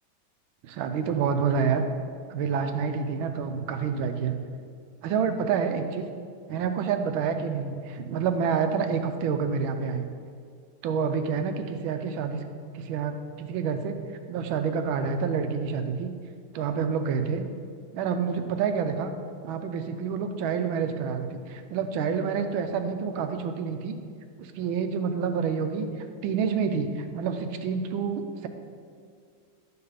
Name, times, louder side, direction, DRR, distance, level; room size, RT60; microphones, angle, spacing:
voice 1, 0.6-1.8 2.3-4.4 5.0-6.1 6.5-10.1 10.8-12.4 12.7-14.0 14.3-16.1 16.5-17.4 17.9-19.1 19.4-24.0 24.4-28.5, right 6 dB, 85° right, 7 dB, 1.5 m, -28 dB
11.0 x 4.7 x 4.9 m, 2.2 s
omnidirectional pair, 2.2 m